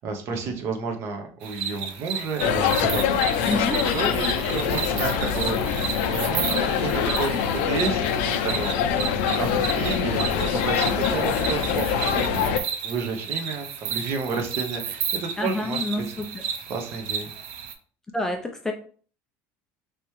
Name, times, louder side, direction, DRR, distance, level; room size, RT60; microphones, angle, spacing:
voice 1, 0.0-3.6 3.9-7.4 7.6-12.5 12.8-16.0 16.7-17.3, right 4 dB, 40° right, 4 dB, 0.7 m, -31 dB
sound 1, 1.4-17.7, right 7 dB, 80° right, 0.5 m, -33 dB
sound 2, 2.4-12.6, left 8 dB, 90° left, 0.5 m, -24 dB
voice 2, 3.5-3.8 15.4-16.5 18.1-18.7, left 1 dB, 10° left, 3 dB, 0.3 m, -28 dB
3.4 x 2.9 x 3.0 m, 0.43 s
cardioid pair, 160°, 6 cm